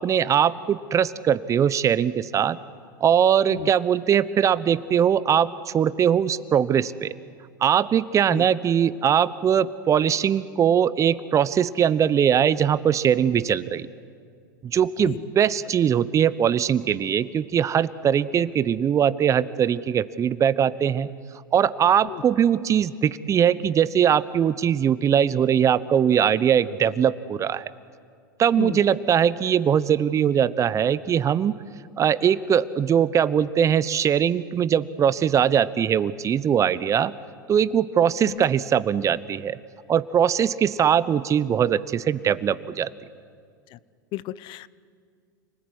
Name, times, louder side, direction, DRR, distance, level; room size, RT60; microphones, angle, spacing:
voice 1, 0.0-2.6 3.0-7.1 7.6-13.9 14.6-21.1 21.5-27.6 28.4-31.5 32.0-37.1 37.5-39.6 39.9-42.9, right 8 dB, 30° right, 17 dB, 0.9 m, -21 dB
voice 2, 44.1-44.7, left 17 dB, 45° left, 19 dB, 0.8 m, -34 dB
29.5 x 20.0 x 9.7 m, 2.2 s
hypercardioid pair, 95°, 11 cm